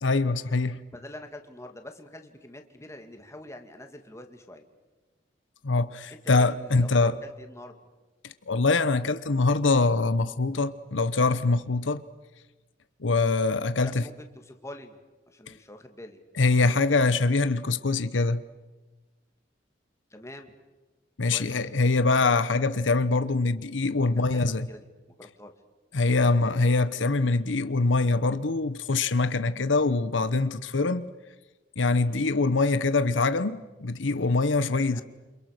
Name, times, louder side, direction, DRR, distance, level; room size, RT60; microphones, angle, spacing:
voice 1, 0.0-0.8 5.6-7.1 8.2-12.0 13.0-14.0 15.5-15.6 16.4-18.4 21.2-24.7 25.9-31.1 31.8-35.0, left 3 dB, 85° left, 1.0 m, -24 dB
voice 2, 0.9-4.7 6.1-7.7 13.8-15.0 15.3-16.2 20.1-20.5 21.3-21.7 24.2-24.8 25.2-25.5 32.0-32.2 34.8-35.0, left 1 dB, 15° left, 2.4 m, -45 dB
28.5 x 27.0 x 6.7 m
head